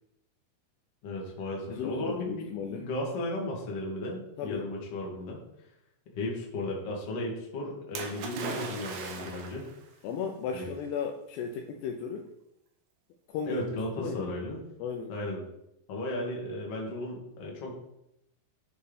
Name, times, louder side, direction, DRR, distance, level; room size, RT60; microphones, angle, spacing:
voice 1, 1.0-5.4 6.1-9.7 10.5-10.7 13.5-14.6 15.1-15.4 15.9-17.7, left 1 dB, 50° left, -2 dB, 2.0 m, -35 dB
voice 2, 1.7-2.9 4.4-4.7 10.0-12.3 13.3-13.6 14.0-14.3 14.8-15.1, left 6 dB, 80° left, 3 dB, 2.6 m, -35 dB
Splash splatter, 7.9-9.7 10.7-10.8, right 5 dB, 75° right, 3.1 m, -38 dB
9.3 x 4.4 x 5.1 m, 0.82 s
omnidirectional pair, 5.2 m